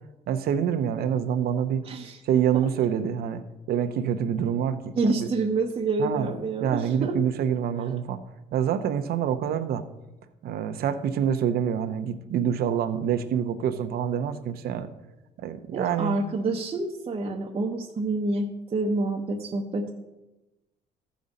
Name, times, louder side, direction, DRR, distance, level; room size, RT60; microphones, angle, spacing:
voice 1, 0.3-1.8 2.2-3.4 3.7-5.3 6.0-6.3 6.6-8.2 8.5-9.8 10.4-14.9 15.4-16.2, right 8 dB, 65° right, 9 dB, 0.8 m, -26 dB
voice 2, 1.8-2.2 5.0-7.2 15.7-19.9, right 3 dB, 30° right, 0 dB, 0.9 m, -28 dB
14.0 x 5.2 x 4.1 m, 1.0 s
cardioid pair, 110°, 17 cm